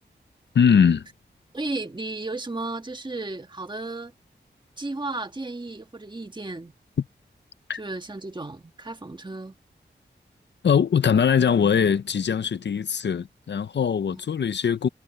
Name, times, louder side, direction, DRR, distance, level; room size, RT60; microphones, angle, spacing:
voice 1, 0.5-1.0 7.7-7.8 10.6-14.9, left 7 dB, 75° left, 0.6 m, -21 dB
voice 2, 1.5-4.1 4.8-6.7 7.8-9.6 14.1-14.2, right 2 dB, 25° right, 1.6 m, -34 dB
wide cardioid pair, 90°, 19 cm